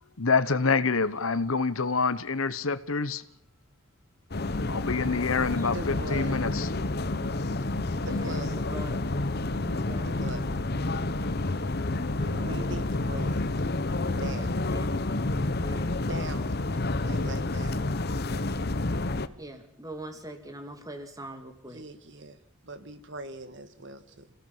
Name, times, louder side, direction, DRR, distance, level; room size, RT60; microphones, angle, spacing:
voice 1, 0.2-3.2 4.7-6.7, left 4 dB, 80° left, 1.2 m, -26 dB
sound 1, 4.3-19.3, left 2 dB, 50° left, 1.0 m, -29 dB
voice 2, 5.7-6.5 7.9-8.6 10.0-10.5 11.5-11.6 12.1-13.4 14.0-14.5 16.1-16.4 17.0-17.9 21.6-24.3, right 2 dB, 60° right, 1.8 m, -41 dB
voice 3, 8.1-9.1 9.7-10.5 11.5-11.9 12.2-12.6 14.7-14.8 15.6-15.9 19.4-21.8, right 1 dB, 15° right, 2.9 m, -43 dB
28.0 x 17.0 x 7.5 m
head